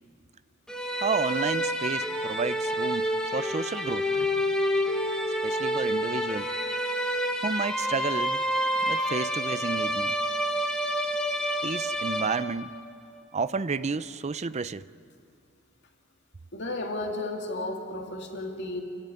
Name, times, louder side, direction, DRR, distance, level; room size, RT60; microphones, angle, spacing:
sound 1, 0.7-12.8, equal, 5° left, 1.8 m, -28 dB
voice 1, 0.9-4.1 5.4-6.5 7.4-8.4 8.9-10.1 11.6-12.7 13.3-14.8, right 4 dB, 35° right, 0.5 m, -31 dB
voice 2, 16.5-18.8, left 2 dB, 55° left, 2.6 m, -33 dB
29.5 x 14.5 x 9.8 m
head